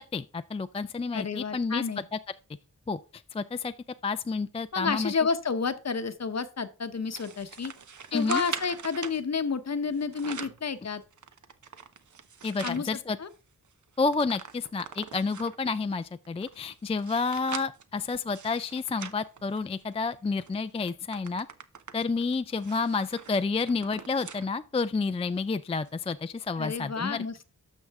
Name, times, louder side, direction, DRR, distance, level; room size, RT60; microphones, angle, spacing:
voice 1, 0.0-1.8 2.1-2.2 2.9-3.0 3.3-3.7 4.0-5.1 8.1-8.4 12.4-13.2 14.0-21.5 21.9-27.2, left 4 dB, 20° left, 0.3 m, -30 dB
voice 2, 1.1-2.0 4.7-7.7 8.1-11.0 12.6-13.3 26.6-27.5, left 5 dB, 50° left, 0.9 m, -30 dB
sound 1, 7.1-9.2 9.9-10.6 11.1-12.8 13.3-13.4 13.6-15.7 16.2-20.0 20.4-20.6 20.9-24.5 24.9-25.0 25.9-26.0, right 6 dB, 60° right, 0.8 m, -42 dB
12.0 x 6.2 x 3.5 m
wide cardioid pair, 80°, 35 cm